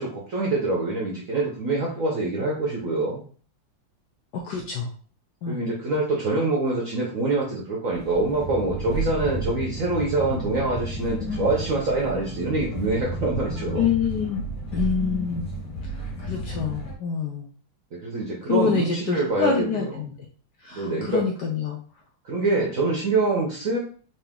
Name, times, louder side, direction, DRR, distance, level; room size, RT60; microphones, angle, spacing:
voice 1, 0.0-3.2 5.5-13.9 18.0-20.0 20.7-21.2 22.2-23.8, right 2 dB, 60° right, -2 dB, 0.9 m, -25 dB
voice 2, 4.3-4.9 5.4-5.6 13.7-14.4 14.7-15.5 16.2-17.5 18.5-20.1 20.6-21.8, left 6 dB, 75° left, 1 dB, 1.0 m, -26 dB
sound 1, 7.9-16.9, right 1 dB, 50° left, 1.6 m, -32 dB
3.9 x 2.8 x 3.6 m, 0.43 s
omnidirectional pair, 2.3 m